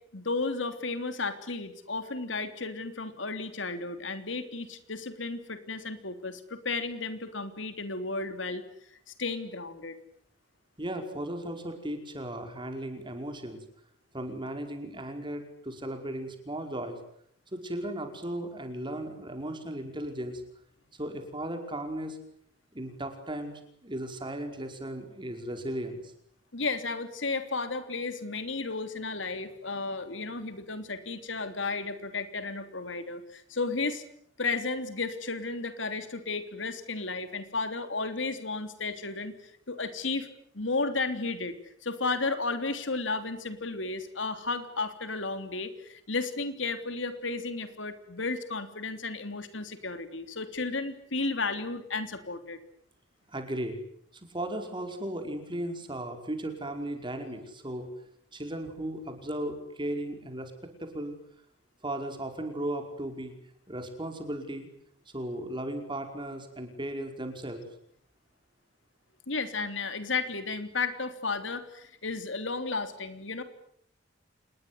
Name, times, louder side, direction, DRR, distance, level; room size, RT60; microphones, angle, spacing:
voice 1, 0.1-8.6 9.1-9.9 26.5-34.0 34.4-40.3 40.5-41.6 41.8-52.6 69.3-73.4, left 3 dB, 80° left, 9 dB, 3.3 m, -33 dB
voice 2, 10.8-13.6 14.1-17.0 17.5-20.4 21.0-22.2 22.7-23.5 23.8-26.0 53.3-53.8 54.3-57.9 58.3-60.5 60.8-61.1 61.8-63.3 63.7-64.7 65.1-67.6, right 1 dB, 25° right, 6 dB, 5.2 m, -36 dB
27.5 x 21.0 x 9.7 m, 0.68 s
head